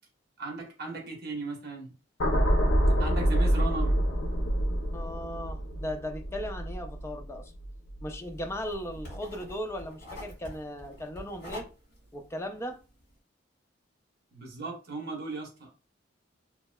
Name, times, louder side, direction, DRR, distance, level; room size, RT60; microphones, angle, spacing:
voice 1, 0.4-1.9 3.0-3.9 14.3-15.7, right 3 dB, 55° right, 1.0 m, -36 dB
sound 1, 2.2-8.5 8.9-9.1, equal, 75° left, 0.6 m, -27 dB
voice 2, 4.9-7.5 8.0-11.7 12.1-12.8, equal, 15° left, 0.4 m, -37 dB
sound 2, 8.2-13.1, left 1 dB, 55° left, 1.7 m, -46 dB
3.0 x 2.8 x 2.2 m
head